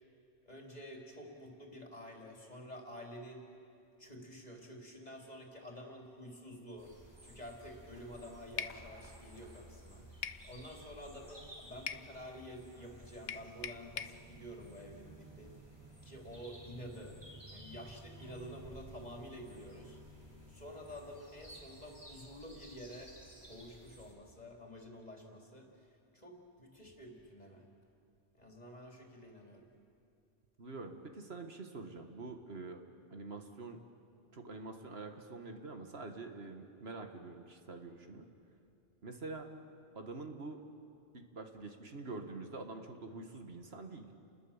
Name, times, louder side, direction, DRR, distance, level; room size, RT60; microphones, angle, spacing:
voice 1, 0.4-3.5 4.0-6.9 7.2-15.5 16.0-17.2 17.5-27.7 28.3-29.7, equal, 40° left, 0 dB, 3.2 m, -50 dB
sound 1, 6.8-24.1, right 1 dB, 20° right, 3.7 m, -55 dB
sound 2, 8.6-8.8 10.2-10.5 11.9-12.1 13.3-14.2, left 8 dB, 65° left, 0.9 m, -40 dB
voice 2, 30.6-32.8 33.1-33.8 34.3-38.3 39.0-39.5 39.9-40.6 41.1-44.1, right 3 dB, 65° right, 5 dB, 1.8 m, -46 dB
30.0 x 20.5 x 7.2 m, 2.5 s
omnidirectional pair, 1.1 m